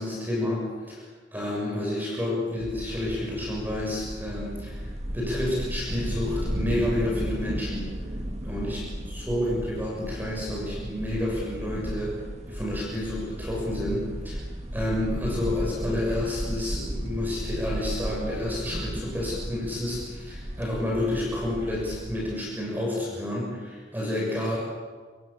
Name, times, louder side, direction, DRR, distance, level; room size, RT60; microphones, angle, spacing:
voice 1, 0.0-4.9 5.1-7.9 8.4-12.2 12.5-14.4 14.7-24.6, left 1 dB, 10° right, -4 dB, 6.5 m, -30 dB
sound 1, 2.6-22.4, equal, 35° right, 1.8 m, -34 dB
28.0 x 25.0 x 7.1 m, 1.5 s
head